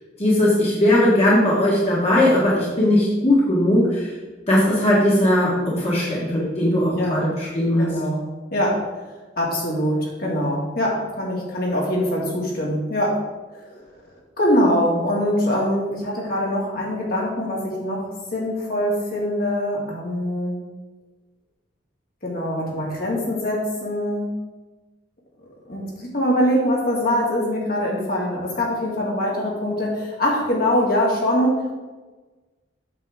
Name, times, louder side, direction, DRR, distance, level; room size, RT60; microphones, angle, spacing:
voice 1, 0.2-4.1 4.5-7.9, left 1 dB, 35° left, -7 dB, 1.8 m, -19 dB
voice 2, 6.9-7.3 7.8-8.8 9.4-13.2 13.5-13.8 14.4-20.6 22.2-24.3 25.7-31.7, equal, 55° left, -3 dB, 2.3 m, -23 dB
8.3 x 7.1 x 3.6 m, 1.3 s
head